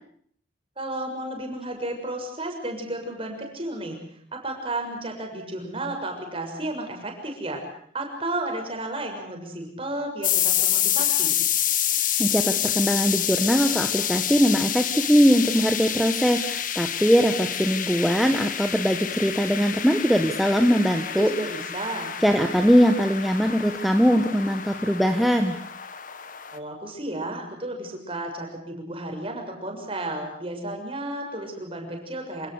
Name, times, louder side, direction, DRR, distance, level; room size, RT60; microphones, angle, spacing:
voice 1, 0.8-4.0 4.3-7.6 7.9-11.4 21.2-22.1 26.5-32.5, right 1 dB, 30° right, 3 dB, 6.6 m, -33 dB
sound 1, 10.2-26.6, left 10 dB, 50° left, 1.6 m, -28 dB
voice 2, 12.2-21.3 22.2-25.6, equal, ahead, 3 dB, 1.4 m, -21 dB
27.5 x 18.0 x 8.2 m, 0.65 s
head